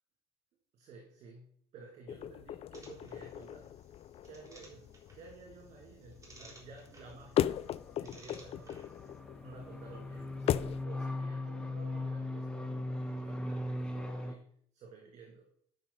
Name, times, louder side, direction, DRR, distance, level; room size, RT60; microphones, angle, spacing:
voice 1, 0.7-3.8 4.2-7.7 8.0-8.9 9.4-14.5 14.7-15.5, right 3 dB, 60° right, 0 dB, 2.7 m, -53 dB
sound 1, 2.1-10.8, left 11 dB, 50° left, 0.5 m, -38 dB
sound 2, 2.7-9.2, right 2 dB, 25° right, 3.7 m, -59 dB
sound 3, 7.3-14.3, left 2 dB, 5° left, 1.5 m, -39 dB
12.5 x 5.9 x 4.1 m, 0.65 s
hypercardioid pair, 55°, 13 cm